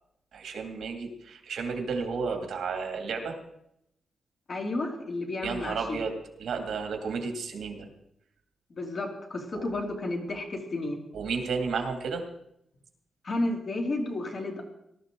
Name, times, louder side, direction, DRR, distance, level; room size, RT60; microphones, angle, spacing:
voice 1, 0.3-3.4 5.4-6.1 6.4-7.9 9.5-9.7 11.1-12.2, right 5 dB, 75° right, 4 dB, 2.3 m, -32 dB
voice 2, 4.5-6.0 8.7-11.0 13.2-14.6, left 2 dB, 40° left, 2 dB, 2.6 m, -32 dB
19.5 x 12.5 x 3.8 m, 0.78 s
wide cardioid pair, 150°, 0 cm